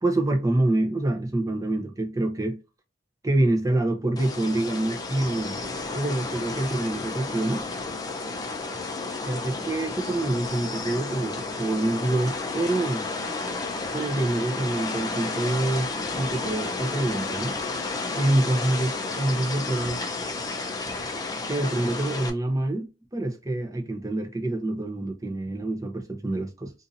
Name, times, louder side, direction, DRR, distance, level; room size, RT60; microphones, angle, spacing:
voice 1, 0.0-2.6 3.2-5.6 5.9-7.7 9.2-13.1 13.9-15.9 16.2-17.5 18.2-20.0 21.5-22.9 23.1-26.7, right 1 dB, 20° right, 0.6 m, -26 dB
sound 1, 4.2-22.3, left 3 dB, 20° left, 0.5 m, -32 dB
2.7 x 2.6 x 3.9 m
head